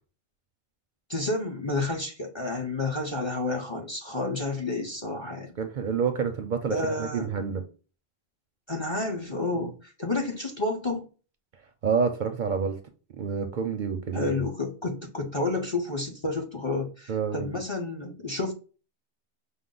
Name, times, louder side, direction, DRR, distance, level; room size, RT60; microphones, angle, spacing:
voice 1, 1.1-5.5 6.7-7.3 8.7-11.0 14.1-18.5, left 2 dB, 30° left, 0.6 m, -30 dB
voice 2, 5.6-7.6 9.5-9.6 11.8-12.8 13.2-14.4 17.1-17.6, right 6 dB, 60° right, 0.6 m, -28 dB
5.4 x 2.0 x 3.8 m
omnidirectional pair, 1.1 m